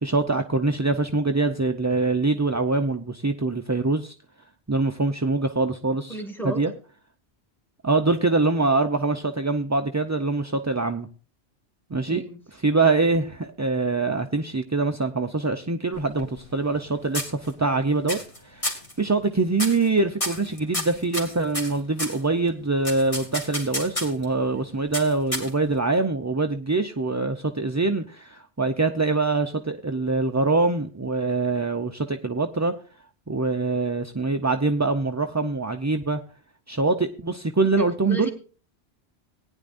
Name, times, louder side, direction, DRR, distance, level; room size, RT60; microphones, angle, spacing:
voice 1, 0.0-4.1 4.7-6.2 6.4-6.7 7.8-11.1 11.9-12.2 12.6-32.7 33.3-36.2 36.7-38.3, right 3 dB, 25° right, 5 dB, 0.4 m, -24 dB
voice 2, 6.1-6.7 12.1-12.4 37.8-38.3, right 2 dB, ahead, 5 dB, 2.1 m, -33 dB
sound 1, 15.9-16.8 17.1-17.7 18.1-18.4 18.6-18.9 19.5-19.9 20.2-22.2 22.8-24.2 24.9-25.8, left 1 dB, 30° left, 2.6 m, -30 dB
18.5 x 10.0 x 2.5 m, 0.36 s
omnidirectional pair, 1.1 m